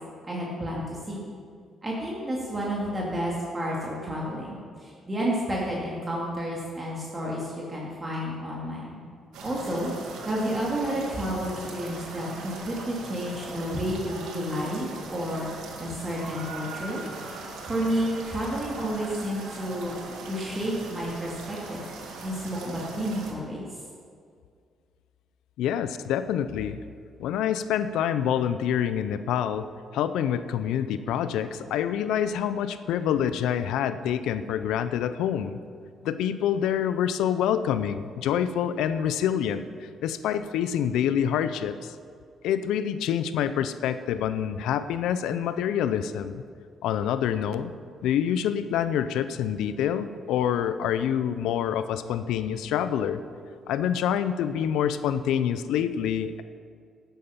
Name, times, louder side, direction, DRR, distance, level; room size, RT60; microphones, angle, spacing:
voice 1, 0.2-1.2 1.8-9.0 9.4-9.9 10.2-15.5 15.8-17.0 17.7-19.9 20.2-21.8 22.2-23.8, equal, 25° right, -4 dB, 2.2 m, -31 dB
sound 1, 9.3-23.3, right 3 dB, 90° right, 1.7 m, -40 dB
voice 2, 25.6-26.8 27.2-29.7 29.9-35.6 36.0-41.9 42.4-46.4 46.8-47.7 48.0-53.2 53.7-56.4, left 9 dB, 90° left, 12 dB, 0.5 m, -26 dB
11.5 x 9.2 x 5.8 m, 2.2 s
cardioid pair, 90°, 0 cm